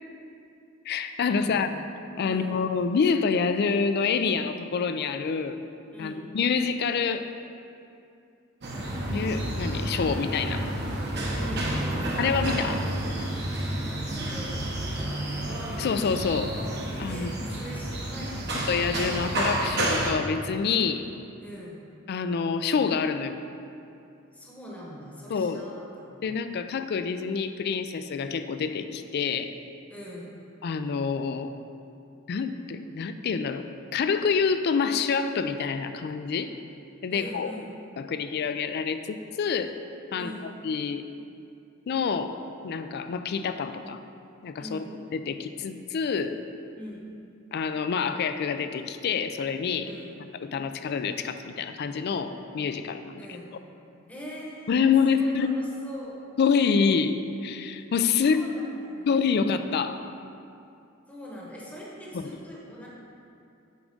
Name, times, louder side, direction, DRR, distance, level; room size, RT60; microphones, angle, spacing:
voice 1, 0.9-1.7 2.2-5.6 6.0-7.3 9.1-10.7 12.2-12.8 15.8-16.5 17.0-17.3 18.7-21.0 22.1-23.4 25.3-25.6 26.2-29.5 30.6-31.5 32.3-33.6 33.9-36.5 37.0-37.5 38.0-39.8 40.1-40.3 40.6-41.0 41.9-44.0 44.4-44.8 45.1-46.4 47.5-49.9 50.4-53.2 54.7-55.5 56.4-58.4 59.1-60.0 62.1-62.2, left 5 dB, 55° left, 10 dB, 0.3 m, -27 dB
voice 2, 2.2-2.6 5.9-6.2 11.3-12.2 13.8-15.3 17.1-18.7 21.4-21.8 24.3-26.2 29.9-30.3 37.1-37.8 40.2-40.5 44.6-44.9 46.7-47.1 49.8-50.1 53.2-53.5 54.1-56.2 58.2-59.1 61.1-62.9, equal, 5° left, -5 dB, 1.0 m, -42 dB
sound 1, 8.6-20.1, right 1 dB, 55° right, 1.0 m, -30 dB
8.3 x 3.6 x 5.3 m, 2.6 s
head